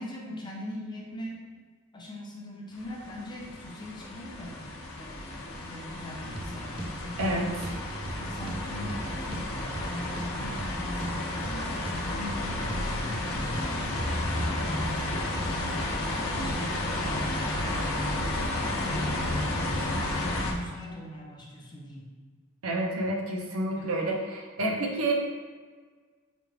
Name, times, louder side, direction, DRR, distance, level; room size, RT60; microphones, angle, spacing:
voice 1, 0.0-1.5 1.9-4.6 5.0-7.8 8.1-13.9 14.3-17.9 18.2-22.1 23.8-24.0, left 1 dB, 20° left, -3 dB, 0.6 m, -41 dB
sound 1, 2.8-20.5, left 1 dB, 75° left, 0.7 m, -32 dB
sound 2, 6.2-14.7, right 1 dB, 25° right, 0.4 m, -38 dB
voice 2, 22.6-25.1, right 1 dB, 75° right, 0 dB, 0.7 m, -29 dB
5.0 x 2.3 x 3.3 m, 1.5 s
head